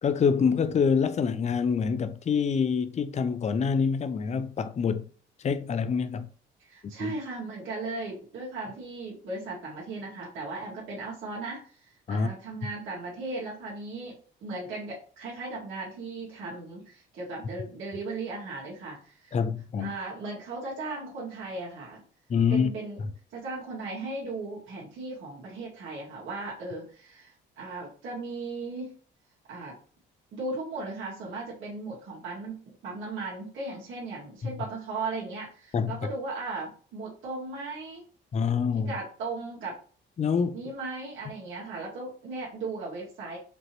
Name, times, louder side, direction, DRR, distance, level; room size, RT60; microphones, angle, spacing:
voice 1, 0.0-5.1 5.4-6.3 7.0-7.1 12.1-12.3 19.3-19.9 22.3-22.7 34.4-34.5 35.7-36.0 38.3-38.9 40.2-40.6, left 6 dB, 35° left, 0.5 m, -26 dB
voice 2, 6.7-14.2 14.4-19.4 19.8-22.0 22.5-23.0 23.3-29.0 29.5-29.7 30.3-32.6 32.8-38.0 38.9-39.8 40.5-43.4, right 3 dB, 80° right, 1.9 m, -37 dB
5.1 x 3.0 x 3.1 m
cardioid pair, 90°, 20 cm